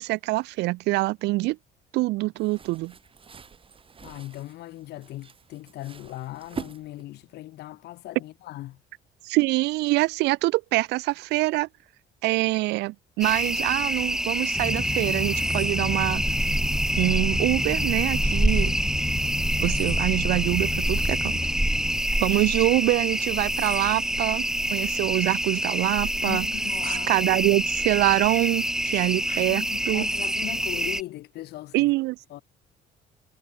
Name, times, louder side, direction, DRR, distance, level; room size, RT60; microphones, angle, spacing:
voice 1, 0.0-1.6 1.9-2.9 9.2-11.7 12.2-16.2 17.0-18.8 19.6-21.4 22.2-26.4 26.8-30.0 31.7-32.1, right 20 dB, 90° right, 1.6 m, -25 dB
sound 1, 2.4-7.3, right 5 dB, 30° right, 3.9 m, -44 dB
voice 2, 4.0-8.8 19.6-19.8 22.1-22.2 26.1-27.2 28.9-31.9 32.3-32.4, left 16 dB, 75° left, 7.2 m, -39 dB
sound 2, 13.2-31.0, right 1 dB, 5° right, 1.5 m, -26 dB
sound 3, 14.5-22.0, left 3 dB, 10° left, 0.5 m, -33 dB
cardioid pair, 110°, 17 cm